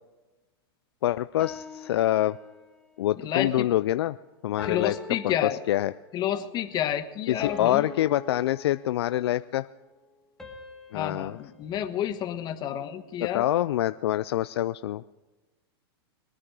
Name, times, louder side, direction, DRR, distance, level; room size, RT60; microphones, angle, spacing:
voice 1, 1.0-2.4 3.0-4.2 4.4-4.9 5.2-5.3 5.7-5.9 7.3-9.7 10.9-11.4 13.2-15.0, left 13 dB, 80° left, 13 dB, 0.4 m, -26 dB
sound 1, 1.4-2.9 4.6-6.2 7.4-9.3 10.4-12.7, left 3 dB, 5° left, 1.5 m, -44 dB
voice 2, 3.2-3.7 4.6-5.6 6.1-7.9 10.9-13.5, left 10 dB, 30° left, 9 dB, 1.2 m, -30 dB
22.5 x 9.8 x 4.8 m, 1.2 s
hypercardioid pair, 135°, 13 cm